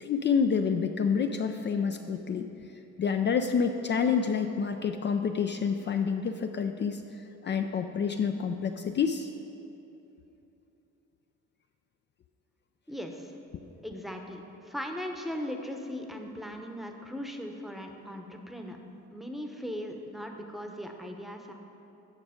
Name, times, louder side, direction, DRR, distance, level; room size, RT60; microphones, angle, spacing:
voice 1, 0.0-2.5 3.0-7.0 7.4-9.3, left 6 dB, 40° left, 6 dB, 0.4 m, -28 dB
voice 2, 12.9-13.4 13.8-18.8 19.1-21.5, equal, ahead, 3 dB, 0.8 m, -38 dB
9.5 x 6.1 x 5.0 m, 2.9 s
cardioid pair, 90°, 30 cm